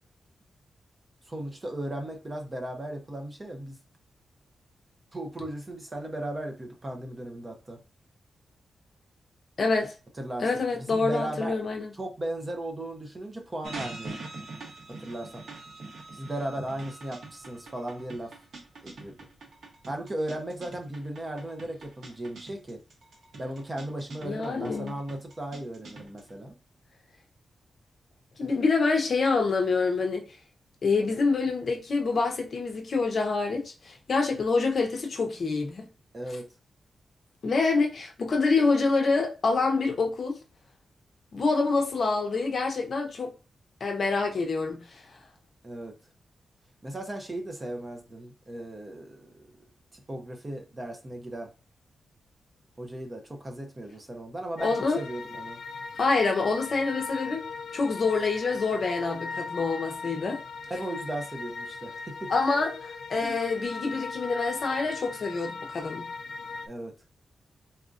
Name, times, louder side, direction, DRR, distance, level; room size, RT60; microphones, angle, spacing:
voice 1, 1.3-3.8 5.1-7.8 10.2-10.5 10.8-11.5 11.9-14.3 14.9-15.4 16.1-18.3 18.8-19.3 19.8-22.8 23.4-26.6 36.1-36.5 45.6-46.0 46.8-49.5 49.9-51.5 52.8-55.6 60.7-62.3 66.7-66.9, right 1 dB, 20° right, 0.6 m, -36 dB
voice 2, 9.6-9.9 10.4-11.9 24.2-24.9 28.4-30.2 30.8-35.9 37.4-40.4 41.3-43.3 43.8-45.0 54.6-55.0 56.0-57.4 57.7-60.4 62.3-66.0, left 4 dB, 50° left, 0.7 m, -26 dB
sound 1, 13.6-26.3, right 3 dB, 70° right, 0.9 m, -44 dB
sound 2, 54.6-66.7, left 4 dB, 80° left, 0.4 m, -38 dB
4.1 x 2.5 x 2.4 m
wide cardioid pair, 155°, 0 cm